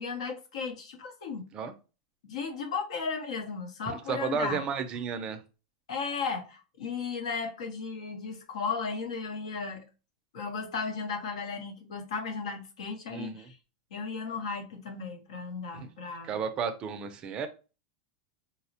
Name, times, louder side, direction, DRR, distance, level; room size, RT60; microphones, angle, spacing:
voice 1, 0.0-1.5 2.2-4.6 5.9-9.9 10.3-13.6 13.9-16.4, left 5 dB, 85° left, 0.9 m, -35 dB
voice 2, 3.9-5.4 13.1-13.5 15.7-15.9 16.2-17.5, right 6 dB, 25° right, 0.4 m, -33 dB
4.0 x 2.1 x 2.7 m
supercardioid pair, 155°, 3 cm